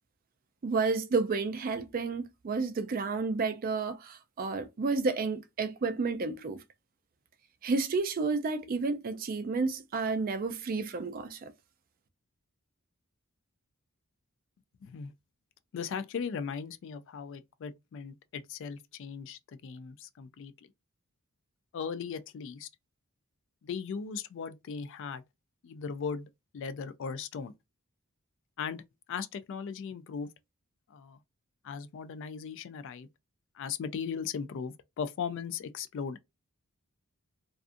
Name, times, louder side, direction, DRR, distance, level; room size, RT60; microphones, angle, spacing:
voice 1, 0.6-6.6 7.6-11.5, right 4 dB, 40° right, 0.3 m, -31 dB
voice 2, 15.7-20.7 21.7-22.7 23.6-25.2 25.6-26.3 26.5-27.5 28.6-28.8 29.1-30.3 30.9-31.2 31.6-33.1 33.5-36.2, left 6 dB, 55° left, 0.3 m, -38 dB
2.4 x 2.4 x 2.5 m
head